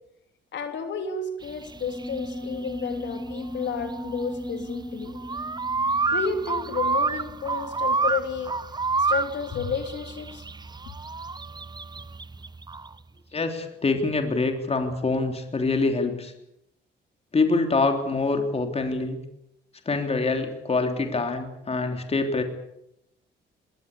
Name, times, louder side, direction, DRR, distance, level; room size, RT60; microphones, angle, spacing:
voice 1, 0.5-5.2 6.1-8.5 9.0-10.5, left 5 dB, 65° left, 6 dB, 3.5 m, -31 dB
sound 1, 1.5-12.9, right 4 dB, 20° right, 0.9 m, -29 dB
sound 2, 1.7-7.6, equal, 10° left, 6.3 m, -37 dB
voice 2, 13.3-16.3 17.3-19.2 19.9-22.4, left 3 dB, 30° left, 5 dB, 3.4 m, -25 dB
21.0 x 18.5 x 8.5 m, 0.82 s
cardioid pair, 90°, 20 cm